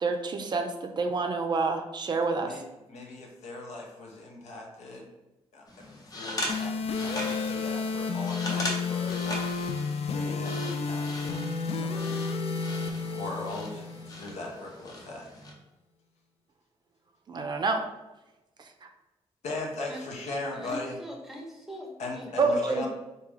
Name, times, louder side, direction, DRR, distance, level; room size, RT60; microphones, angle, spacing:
voice 1, 0.0-2.5 17.3-17.8 22.4-22.9, right 3 dB, 40° right, 5 dB, 0.4 m, -27 dB
voice 2, 2.9-5.1 5.5-9.3 10.0-12.3 13.1-15.3 19.4-21.0 22.0-22.9, left 2 dB, 85° left, -1 dB, 0.9 m, -39 dB
sound 1, 5.7-15.5, left 1 dB, 35° left, 0.8 m, -39 dB
sound 2, 6.5-14.5, left 4 dB, 65° left, 0.4 m, -31 dB
voice 3, 20.6-22.9, equal, 5° right, 0 dB, 0.7 m, -40 dB
3.6 x 2.8 x 3.2 m, 0.99 s
cardioid pair, 110°, 11 cm